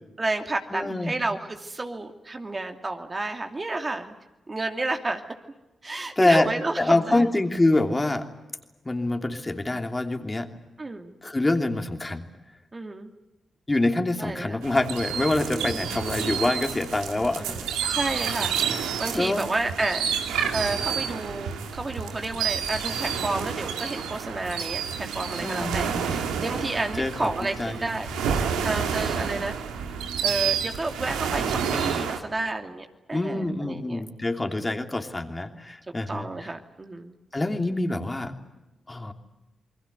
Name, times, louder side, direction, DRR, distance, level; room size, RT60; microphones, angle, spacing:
voice 1, 0.2-4.1 4.5-5.2 5.8-7.3 10.8-11.2 12.7-13.1 14.2-14.6 15.5-15.9 17.4-17.6 17.9-20.0 20.5-28.1 28.6-29.6 30.2-34.0 34.4-34.6 36.1-37.1, right 2 dB, 35° right, 5 dB, 2.6 m, -31 dB
voice 2, 0.7-1.1 6.2-6.5 6.8-8.3 8.8-10.5 11.2-12.2 13.7-17.6 18.7-18.8 19.1-19.4 25.4-26.2 27.0-27.3 27.6-27.9 33.1-36.5 37.3-38.4 38.9-39.1, left 2 dB, 25° left, 5 dB, 3.0 m, -25 dB
sound 1, 14.6-32.2, right 7 dB, 90° right, 2.1 m, -29 dB
Couch Drop, 27.6-30.9, left 5 dB, 80° left, 4.5 m, -47 dB
28.5 x 21.5 x 8.1 m, 1.0 s
supercardioid pair, 40°, 0 cm